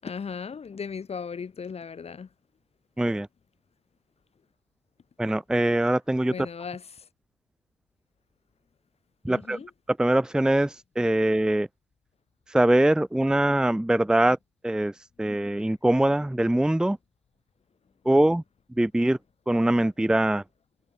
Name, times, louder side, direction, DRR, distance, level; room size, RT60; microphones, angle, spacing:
voice 1, 0.0-2.3 6.3-7.1 9.3-9.7, left 6 dB, 15° left, 6.6 m, -37 dB
voice 2, 3.0-3.3 5.2-6.5 9.2-9.6 9.9-11.7 12.5-14.4 14.6-17.0 18.1-18.4 18.8-19.2 19.5-20.4, right 1 dB, ahead, 1.7 m, -23 dB
hypercardioid pair, 115°, 43 cm